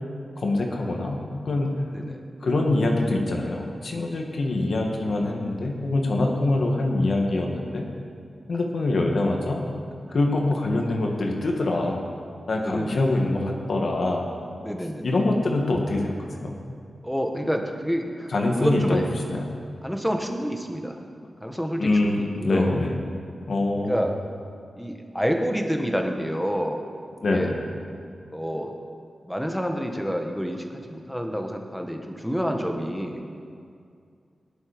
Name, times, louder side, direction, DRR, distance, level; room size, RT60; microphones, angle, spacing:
voice 1, 0.4-1.7 2.4-7.8 8.5-9.6 10.1-12.0 12.5-14.3 15.0-16.6 18.3-19.0 19.3-19.5 21.8-23.0 23.5-24.1 27.2-27.6, left 2 dB, 65° left, 1 dB, 2.0 m, -24 dB
voice 2, 12.6-13.2 14.6-15.2 17.0-18.3 18.6-19.1 19.8-21.0 21.4-22.8 23.9-24.1 24.8-26.8 27.3-27.5 28.3-28.7 29.2-33.2, equal, ahead, 3 dB, 1.4 m, -28 dB
18.5 x 11.0 x 5.2 m, 2.3 s
wide cardioid pair, 115°, 0 cm